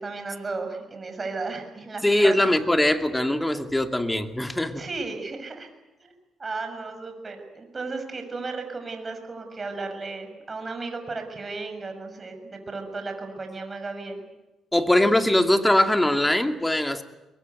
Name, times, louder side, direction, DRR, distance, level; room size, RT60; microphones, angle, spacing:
voice 1, 0.0-2.3 4.8-5.7 6.0-6.1 6.4-14.2, right 3 dB, 30° right, 5 dB, 6.3 m, -34 dB
voice 2, 2.0-4.8 14.7-17.0, left 1 dB, 10° left, 7 dB, 2.3 m, -21 dB
22.5 x 22.0 x 9.5 m, 1.1 s
cardioid pair, 90°, 0 cm